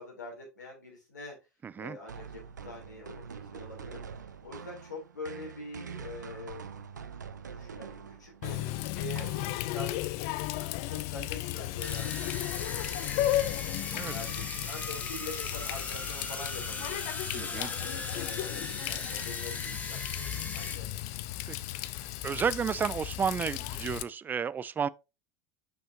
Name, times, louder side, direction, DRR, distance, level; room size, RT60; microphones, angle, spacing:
voice 1, 0.0-1.4 1.8-3.2 3.5-4.0 4.4-6.7 7.5-8.7 8.9-9.3 9.7-10.5 10.9-13.3 14.1-17.0 17.4-20.9, left 2 dB, 80° left, 3.6 m, -44 dB
voice 2, 1.6-2.0 13.9-14.1 17.3-17.7 21.5-21.6 22.2-24.9, right 7 dB, 20° right, 0.3 m, -32 dB
sound 1, 2.1-9.9, right 6 dB, 80° right, 0.6 m, -45 dB
Water tap faucet, 8.4-24.0, left 15 dB, 55° left, 0.5 m, -35 dB
sound 2, 11.8-20.8, left 2 dB, 15° left, 1.6 m, -39 dB
6.9 x 5.6 x 2.8 m
figure-of-eight pair, 80°, 10 cm